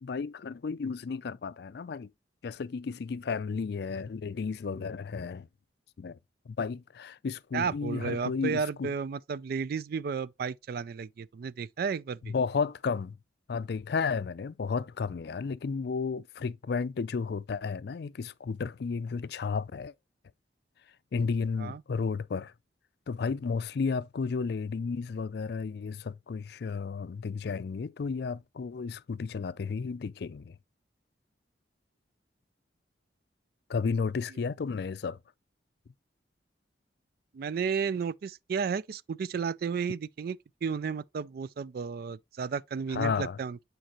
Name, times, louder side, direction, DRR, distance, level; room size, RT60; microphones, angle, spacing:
voice 1, 0.0-2.1 2.4-5.5 6.0-6.2 6.5-8.9 12.3-13.2 13.5-19.9 21.1-22.5 23.1-30.6 33.7-35.2 42.9-43.4, left 5 dB, 60° left, 0.4 m, -33 dB
voice 2, 7.5-12.3 21.6-21.8 37.3-43.6, right 6 dB, 55° right, 0.3 m, -33 dB
8.9 x 4.6 x 3.0 m
head